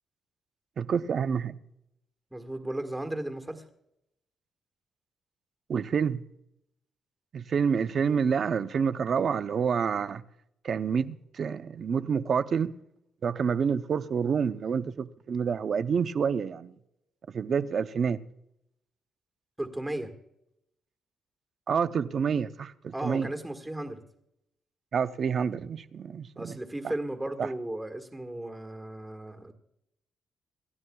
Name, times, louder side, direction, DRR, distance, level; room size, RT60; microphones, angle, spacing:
voice 1, 0.8-1.6 5.7-6.2 7.3-10.2 10.6-12.8 13.2-16.7 17.3-18.2 21.7-23.3 24.9-26.6 26.8-26.9 27.4-27.5, right 6 dB, 45° right, 0.6 m, -28 dB
voice 2, 2.3-3.6 19.6-20.1 22.9-24.0 26.3-29.5, right 1 dB, 10° right, 1.5 m, -35 dB
28.0 x 12.5 x 2.3 m
cardioid pair, 145°, 0 cm